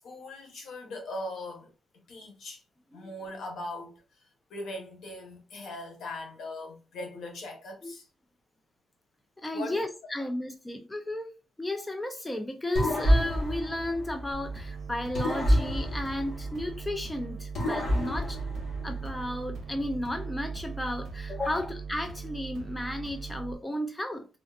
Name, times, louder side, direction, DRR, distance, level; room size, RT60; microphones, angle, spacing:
voice 1, 0.0-2.6 2.9-8.1 9.5-9.8 10.2-10.3 21.4-21.6, left 1 dB, 75° left, 1.0 m, -40 dB
voice 2, 9.4-11.3 11.6-18.4 18.8-24.3, left 1 dB, 10° left, 0.4 m, -33 dB
sound 1, 12.8-14.6 15.2-17.0 17.5-19.3, equal, 50° left, 1.3 m, -28 dB
sound 2, 14.3-23.6, right 5 dB, 80° right, 0.6 m, -40 dB
sound 3, 18.3-21.8 22.2-22.3, right 4 dB, 20° right, 0.8 m, -40 dB
3.5 x 2.3 x 2.4 m
wide cardioid pair, 150°, 0 cm